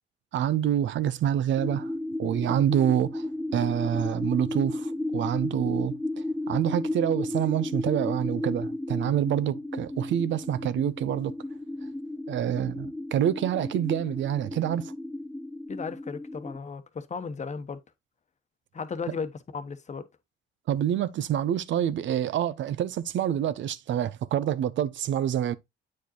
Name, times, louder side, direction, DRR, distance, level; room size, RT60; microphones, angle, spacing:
voice 1, 0.3-1.9 2.2-6.0 6.5-11.3 12.3-14.9 20.7-25.5, right 10 dB, 70° right, 0.6 m, -27 dB
sound 1, 1.6-16.6, left 1 dB, 5° left, 0.5 m, -34 dB
voice 2, 15.7-17.8 18.7-20.1, left 5 dB, 35° left, 1.0 m, -35 dB
8.5 x 4.7 x 3.0 m
cardioid pair, 90°, 20 cm